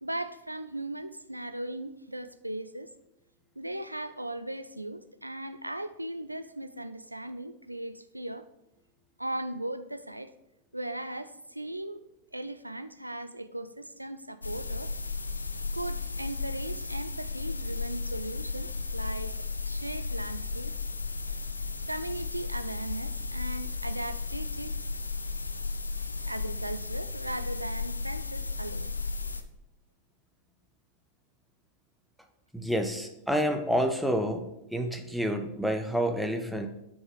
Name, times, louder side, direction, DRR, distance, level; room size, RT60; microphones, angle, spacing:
voice 1, 0.0-2.9 3.6-8.4 9.2-10.3 10.7-12.0 12.3-15.0 15.7-20.7 21.9-24.8 26.2-28.9, right 1 dB, 85° right, 0.5 m, -38 dB
sound 1, 14.4-29.4, left 4 dB, 80° left, 0.6 m, -34 dB
voice 2, 32.5-34.4 34.7-36.7, equal, ahead, 1.0 m, -28 dB
9.7 x 5.4 x 4.8 m
figure-of-eight pair, 90°, 0 cm